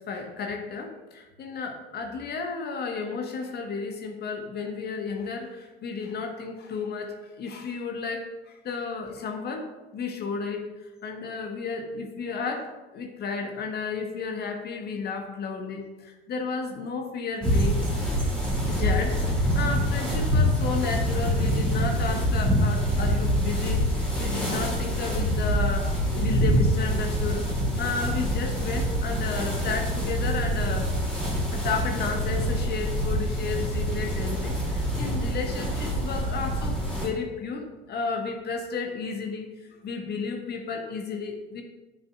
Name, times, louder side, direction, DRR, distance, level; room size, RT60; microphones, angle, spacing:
voice 1, 0.0-9.7 9.9-10.7 11.0-17.9 18.7-27.5 27.8-30.9 31.5-41.6, left 5 dB, 30° left, 3 dB, 1.3 m, -33 dB
sound 1, 17.4-37.1, equal, 5° left, 2.7 m, -25 dB
9.8 x 6.8 x 2.4 m, 1.1 s
figure-of-eight pair, 70°, 31 cm